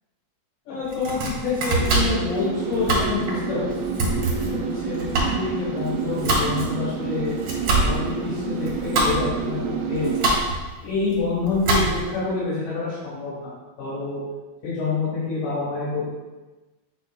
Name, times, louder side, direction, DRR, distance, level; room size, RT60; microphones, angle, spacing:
voice 1, 0.7-3.7 4.5-9.6 9.9-10.1 10.8-13.5 13.8-14.2 14.6-16.1, left 4 dB, 85° left, -9 dB, 4.6 m, -27 dB
Domestic sounds home sounds, 0.8-12.2, right 2 dB, 55° right, 1.8 m, -26 dB
sound 1, 1.8-10.4, right 5 dB, 80° right, 2.5 m, -29 dB
8.5 x 5.9 x 2.5 m, 1.2 s
omnidirectional pair, 5.0 m